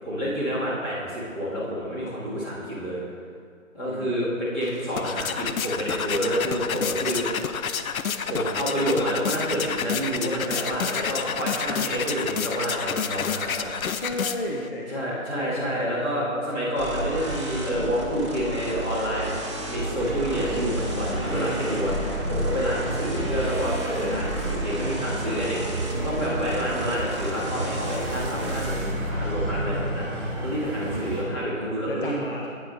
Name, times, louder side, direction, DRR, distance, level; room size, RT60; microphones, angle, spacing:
voice 1, 0.0-3.0 3.7-7.2 8.1-13.7 14.9-32.1, equal, 15° left, -11 dB, 2.1 m, -28 dB
voice 2, 3.9-4.2 14.0-16.6 21.2-21.8 26.6-27.1 30.8-31.3 31.9-32.5, left 1 dB, 40° left, -1 dB, 0.6 m, -34 dB
sound 1, 4.6-14.7, left 7 dB, 80° left, 0.6 m, -30 dB
sound 2, 16.8-30.0, right 1 dB, 20° right, 0.7 m, -31 dB
sound 3, 20.0-31.2, right 2 dB, 40° right, 2.0 m, -33 dB
9.5 x 9.0 x 2.7 m, 2.2 s
figure-of-eight pair, 160°, 42 cm